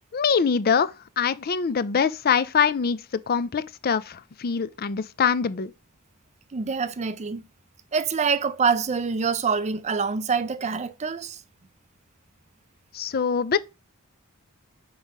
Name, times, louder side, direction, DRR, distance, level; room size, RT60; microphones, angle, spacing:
voice 1, 0.1-5.7 12.9-13.6, left 6 dB, 45° left, 0.5 m, -24 dB
voice 2, 6.5-7.4 7.9-11.4, right 5 dB, 30° right, 0.5 m, -25 dB
5.6 x 4.7 x 5.4 m
head